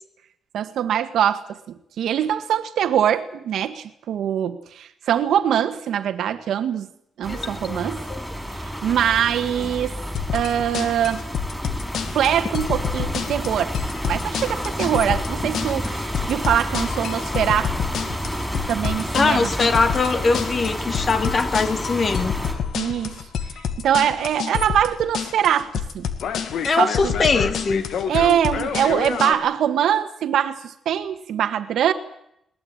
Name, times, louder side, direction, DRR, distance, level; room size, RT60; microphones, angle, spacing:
voice 1, 0.5-1.6 2.0-6.9 7.2-8.0 8.5-10.0 10.3-11.2 12.1-13.8 14.0-17.7 18.7-19.5 22.7-23.1 23.8-26.1 26.8-27.1 28.1-31.9, right 10 dB, 80° right, 9 dB, 1.7 m, -23 dB
sound 1, 7.2-22.5, equal, ahead, 5.2 m, -30 dB
voice 2, 7.3-7.8 8.1-8.2 9.6-9.7 19.1-22.4 26.6-27.8, left 4 dB, 35° left, 8 dB, 2.5 m, -22 dB
sound 2, 10.1-29.3, left 7 dB, 75° left, 2.2 m, -28 dB
22.0 x 19.5 x 8.9 m, 0.74 s
cardioid pair, 135°, 0 cm